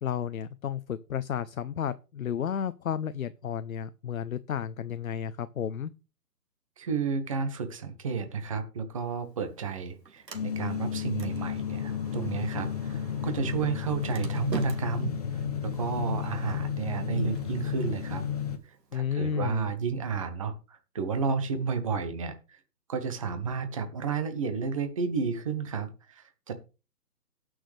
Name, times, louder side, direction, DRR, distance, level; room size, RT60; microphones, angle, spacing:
voice 1, 0.0-5.9 18.9-19.7, left 8 dB, 60° left, 13 dB, 0.7 m, -32 dB
voice 2, 6.8-18.3 18.9-22.6 22.9-26.5, right 5 dB, 20° right, 8 dB, 0.9 m, -32 dB
Sliding door, 9.0-18.9, right 4 dB, 85° right, 2.4 m, -46 dB
sound 1, 10.3-18.6, left 8 dB, 25° left, 0.9 m, -32 dB
18.0 x 6.3 x 3.4 m, 0.32 s
hypercardioid pair, 160°, 48 cm